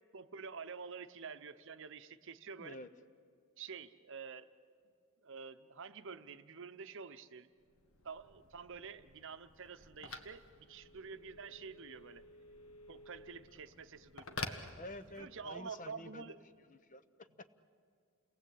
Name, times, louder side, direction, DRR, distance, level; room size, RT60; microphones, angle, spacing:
voice 1, 0.1-2.8 3.6-4.5 5.2-7.5 8.0-12.2 12.9-14.6 15.1-16.4, right 5 dB, 60° right, 11 dB, 0.8 m, -48 dB
voice 2, 2.6-2.9 14.8-16.3 16.7-17.5, left 2 dB, 35° left, 12 dB, 0.9 m, -49 dB
Telephone, 7.6-15.5, left 3 dB, 70° left, 1.5 m, -50 dB
29.0 x 19.0 x 8.5 m, 2.2 s
head